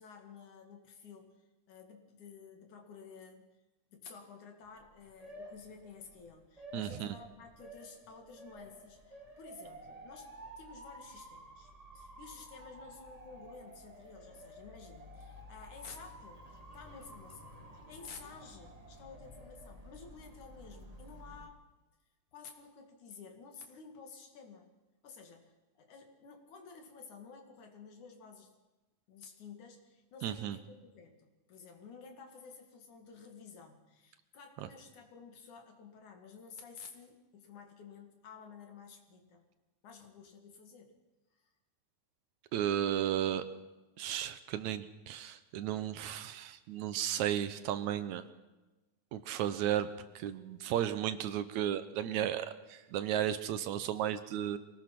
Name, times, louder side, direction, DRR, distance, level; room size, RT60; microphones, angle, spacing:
voice 1, 0.0-1.3 1.7-3.5 3.9-21.6 22.3-24.7 25.0-28.5 29.1-39.4 39.8-40.9 41.3-41.5, left 5 dB, 70° left, 4 dB, 3.7 m, -52 dB
Motor vehicle (road) / Siren, 4.6-21.5, equal, 15° right, 1.6 m, -52 dB
voice 2, 6.7-7.2 30.2-30.6 42.5-43.4 44.0-48.2 49.1-49.9 50.2-54.6, right 11 dB, 75° right, 12 dB, 2.1 m, -34 dB
24.5 x 18.5 x 6.0 m, 1.1 s
omnidirectional pair, 3.6 m